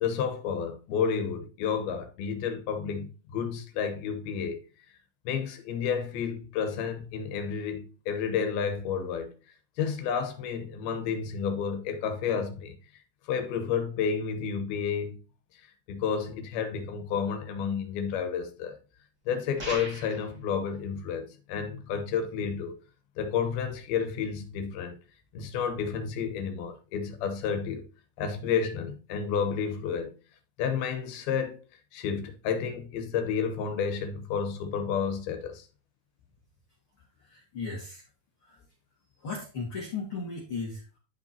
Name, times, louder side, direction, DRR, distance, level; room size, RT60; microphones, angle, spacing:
voice 1, 0.0-4.6 5.3-9.3 9.8-12.8 13.3-15.2 15.9-18.8 19.3-22.8 23.2-25.0 25.3-27.9 28.2-30.1 30.6-31.6 31.9-35.6, left 6 dB, 90° left, 2.9 m, -31 dB
sound 1, 19.6-20.3, right 1 dB, 30° right, 2.9 m, -38 dB
voice 2, 37.3-38.0 38.4-38.6 39.2-41.0, left 4 dB, 45° left, 2.1 m, -36 dB
11.5 x 5.0 x 2.8 m
omnidirectional pair, 4.4 m